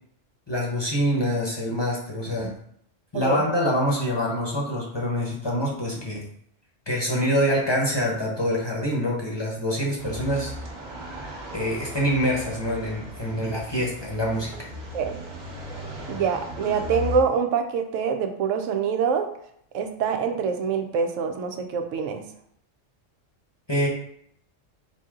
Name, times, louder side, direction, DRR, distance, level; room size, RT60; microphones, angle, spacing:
voice 1, 0.5-2.5 3.1-6.2 6.9-10.5 11.5-14.5 23.7-23.9, equal, 25° left, -4 dB, 0.7 m, -25 dB
sound 1, 10.0-17.2, left 1 dB, 40° right, 1.0 m, -37 dB
voice 2, 16.1-19.3 19.7-22.2, right 6 dB, 90° right, 6 dB, 1.0 m, -25 dB
4.5 x 2.8 x 3.6 m, 0.69 s
omnidirectional pair, 1.3 m